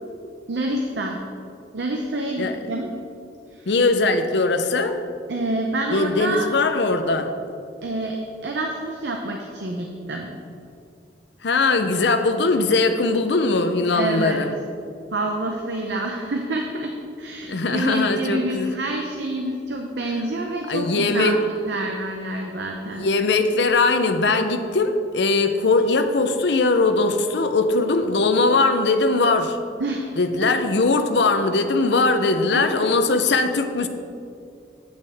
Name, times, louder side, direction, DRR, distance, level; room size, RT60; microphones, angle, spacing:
voice 1, 0.5-1.2 1.7-2.9 3.5-3.7 5.3-6.5 7.8-10.4 13.9-14.4 15.1-23.1 29.8-30.1 30.4-30.5 32.5-33.2, right 1 dB, 75° right, 2 dB, 0.7 m, -28 dB
voice 2, 3.7-5.0 5.9-7.3 11.4-14.5 17.5-18.7 20.7-21.4 22.8-29.6 30.2-33.9, left 3 dB, 75° left, 8 dB, 0.6 m, -20 dB
8.9 x 8.5 x 3.5 m, 2.4 s
head